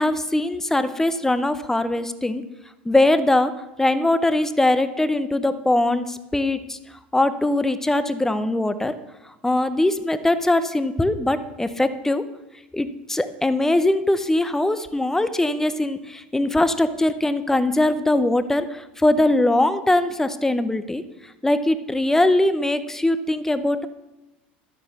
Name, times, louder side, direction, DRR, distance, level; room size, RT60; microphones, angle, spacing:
voice 1, 0.0-2.4 2.9-3.5 3.8-6.8 7.1-9.0 9.4-12.2 12.7-21.0 21.4-23.8, left 1 dB, 5° left, 12 dB, 0.8 m, -21 dB
11.0 x 7.6 x 6.6 m, 1.0 s
hypercardioid pair, 95°, 6 cm